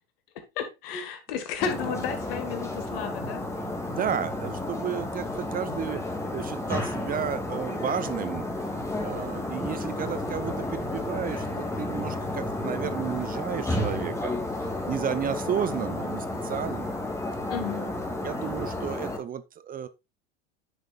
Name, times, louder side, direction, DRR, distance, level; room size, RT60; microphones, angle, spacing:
voice 1, 0.6-3.5 17.5-17.9, left 7 dB, 70° left, 1.9 m, -32 dB
sound 1, 1.6-19.2, left 2 dB, 10° left, 2.6 m, -32 dB
voice 2, 3.9-6.0 6.3-8.4 9.0-14.3 14.8-16.9 17.7-17.9 18.2-19.9, right 9 dB, 30° right, 0.7 m, -32 dB
10.5 x 6.4 x 2.5 m
hypercardioid pair, 85°, 30 cm